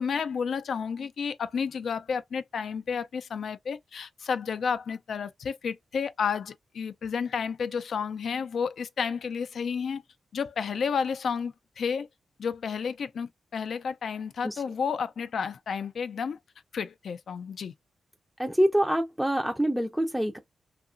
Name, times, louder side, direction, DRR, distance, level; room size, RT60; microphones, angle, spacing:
voice 1, 0.0-10.0 10.3-12.1 12.4-16.4 16.7-17.7, left 6 dB, 70° left, 0.3 m, -31 dB
voice 2, 18.4-20.4, equal, ahead, 0.4 m, -25 dB
2.8 x 2.4 x 2.4 m
cardioid pair, 90°, 0 cm